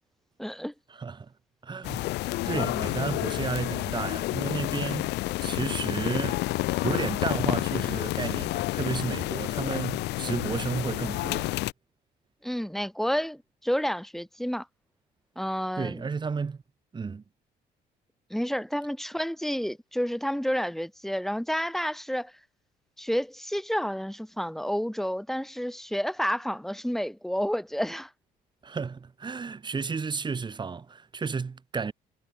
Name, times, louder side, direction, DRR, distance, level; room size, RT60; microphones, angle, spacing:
voice 1, 0.4-0.7 12.4-14.7 15.4-16.1 18.3-22.3 23.0-28.1, equal, ahead, 4.0 m, -30 dB
voice 2, 1.0-1.3 1.6-6.4 6.8-11.5 15.8-16.6 16.9-17.2 28.6-31.9, right 5 dB, 25° right, 2.6 m, -32 dB
sound 1, 1.8-11.7, left 19 dB, 85° left, 2.3 m, -29 dB
cardioid pair, 110°, 17 cm